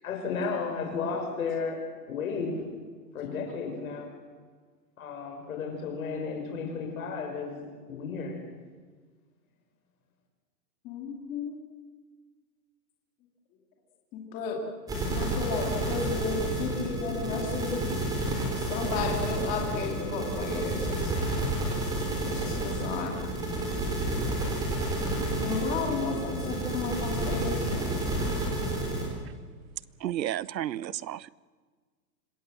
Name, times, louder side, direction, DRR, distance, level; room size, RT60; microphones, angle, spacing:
voice 1, 0.0-2.6 3.1-4.1 5.0-7.5 7.9-8.4, left 5 dB, 55° left, 6.2 m, -33 dB
voice 2, 10.8-11.6 14.1-14.6 15.1-17.8 18.7-21.1 22.2-23.2 25.4-28.1, left 5 dB, 15° left, 2.5 m, -33 dB
sound 1, 14.9-29.1, right 1 dB, 5° right, 4.0 m, -30 dB
voice 3, 30.0-31.3, right 12 dB, 90° right, 0.9 m, -32 dB
26.5 x 20.0 x 7.7 m
hypercardioid pair, 180°, 50 cm